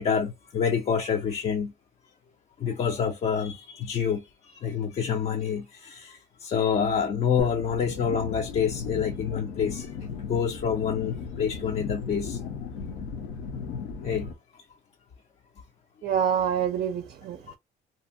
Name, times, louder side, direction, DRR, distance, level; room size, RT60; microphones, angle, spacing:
voice 1, 0.0-1.7 2.6-12.7 14.0-14.3, left 7 dB, 40° left, 0.4 m, -27 dB
sound 1, 7.4-14.3, left 6 dB, 85° left, 0.7 m, -36 dB
voice 2, 16.0-17.6, right 8 dB, 50° right, 0.4 m, -27 dB
2.6 x 2.1 x 2.5 m
cardioid pair, 110°, 17 cm